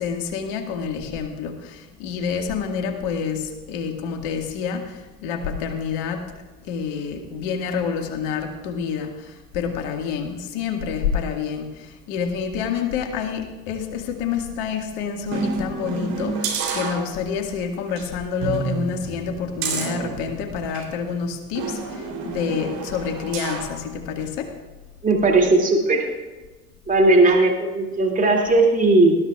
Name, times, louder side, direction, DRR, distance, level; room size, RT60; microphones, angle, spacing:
voice 1, 0.0-6.3 6.6-24.6, left 6 dB, 55° left, 5 dB, 1.9 m, -28 dB
sound 1, 15.3-17.5 17.9-18.0 18.4-20.9 21.6-23.8 24.2-24.3, right 4 dB, 50° right, 3.3 m, -29 dB
voice 2, 25.0-26.1 26.9-29.2, right 2 dB, 15° right, 1 dB, 2.5 m, -17 dB
19.5 x 13.0 x 2.4 m, 1.2 s
figure-of-eight pair, 70°, 45 cm